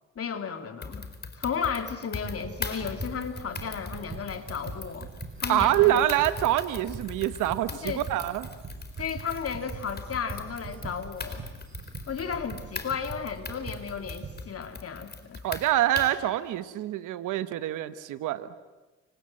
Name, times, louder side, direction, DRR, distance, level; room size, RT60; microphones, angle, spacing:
voice 1, 0.2-1.1 1.4-5.1 5.4-6.0 7.8-8.0 9.0-11.4 12.1-15.4, left 6 dB, 50° left, 7 dB, 2.9 m, -34 dB
sound 1, 0.8-16.3, left 4 dB, 35° left, 3.9 m, -40 dB
sound 2, 2.1-14.4, right 4 dB, 45° right, 7.4 m, -43 dB
voice 2, 5.5-8.5 15.4-18.5, right 13 dB, 90° right, 12 dB, 1.2 m, -25 dB
29.0 x 25.5 x 7.7 m, 1.2 s
cardioid pair, 90°, 30 cm